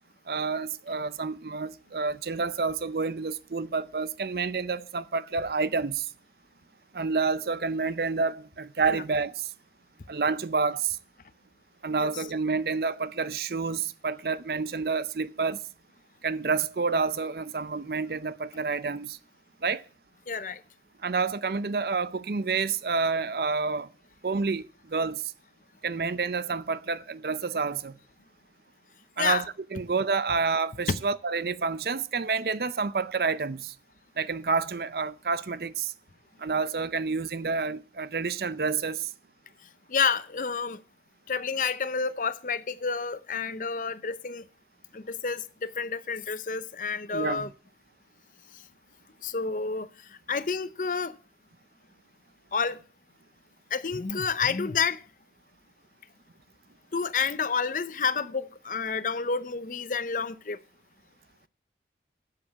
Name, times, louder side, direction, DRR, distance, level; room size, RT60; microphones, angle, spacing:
voice 1, 0.3-6.1 6.9-9.5 10.1-11.0 11.8-15.6 16.2-19.2 19.6-19.8 21.0-23.9 24.2-25.3 25.8-27.9 29.2-29.5 29.7-33.7 34.2-35.9 36.4-39.1 47.1-47.5, right 4 dB, 60° right, 0.5 m, -29 dB
voice 2, 20.3-20.6 29.2-29.4 39.9-40.8 41.3-44.4 44.9-47.5 49.2-49.9 50.3-51.2 52.5-52.8 53.7-55.0 56.9-60.6, left 5 dB, 45° left, 0.6 m, -29 dB
7.6 x 7.5 x 8.2 m
head